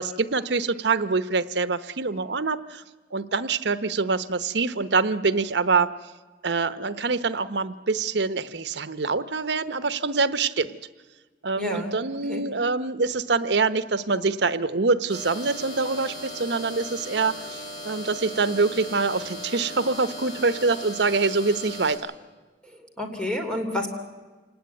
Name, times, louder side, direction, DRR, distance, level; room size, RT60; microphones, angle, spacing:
voice 1, 0.0-2.8 3.1-5.9 6.4-10.8 11.4-22.1, right 4 dB, 75° right, 13 dB, 0.9 m, -25 dB
voice 2, 11.6-12.0 12.3-12.5 22.6-23.9, left 1 dB, 5° left, 3 dB, 3.1 m, -30 dB
sound 1, 15.1-21.9, left 1 dB, 25° left, 7.7 m, -38 dB
28.0 x 18.5 x 9.4 m, 1.3 s
head